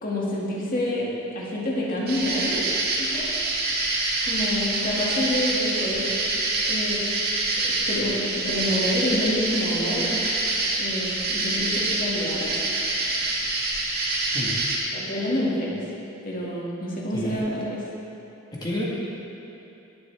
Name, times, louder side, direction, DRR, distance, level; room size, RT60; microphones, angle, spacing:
voice 1, 0.0-2.6 3.0-3.3 4.2-6.1 6.7-7.2 7.7-10.2 10.8-12.5 14.9-15.8 16.2-17.8, left 1 dB, 40° left, -5 dB, 2.2 m, -28 dB
sound 1, 2.1-14.8, right 2 dB, 50° right, 1.7 m, -26 dB
voice 2, 17.1-17.4 18.5-18.8, left 1 dB, 20° left, -5 dB, 1.6 m, -29 dB
18.0 x 7.8 x 3.5 m, 2.8 s
head